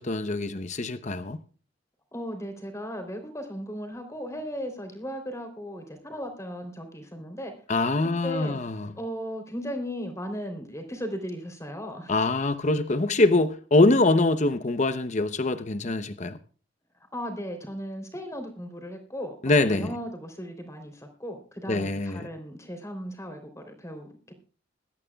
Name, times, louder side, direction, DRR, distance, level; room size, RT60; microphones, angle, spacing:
voice 1, 0.0-1.4 7.7-8.9 12.1-16.4 19.4-19.9 21.7-22.3, left 2 dB, 40° left, 0.8 m, -24 dB
voice 2, 2.1-7.5 8.0-8.6 8.9-12.1 17.1-24.3, equal, 15° left, 3.3 m, -36 dB
22.0 x 12.5 x 2.3 m
head